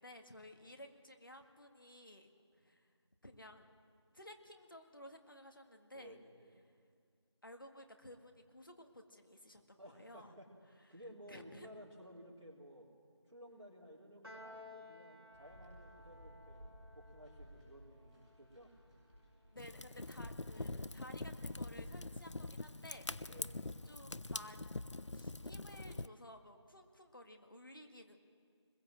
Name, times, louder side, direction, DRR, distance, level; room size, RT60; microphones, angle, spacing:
voice 1, 0.0-2.3 2.6-2.9 3.2-3.7 4.1-6.2 7.4-10.4 11.3-11.7 19.5-23.3 23.9-24.6 25.1-28.2, left 1 dB, 50° left, 5 dB, 1.9 m, -55 dB
voice 2, 5.9-6.6 9.8-10.5 10.9-12.9 13.3-18.7 23.3-23.6, equal, 80° right, -3 dB, 4.4 m, -56 dB
Piano, 14.2-20.7, left 2 dB, 55° right, 5.4 m, -59 dB
sound 1, 15.3-22.1, equal, ahead, 2.1 m, -58 dB
Fire, 19.5-26.1, left 2 dB, 85° left, 0.6 m, -44 dB
22.5 x 21.0 x 7.7 m, 2.1 s
figure-of-eight pair, 170°, 15 cm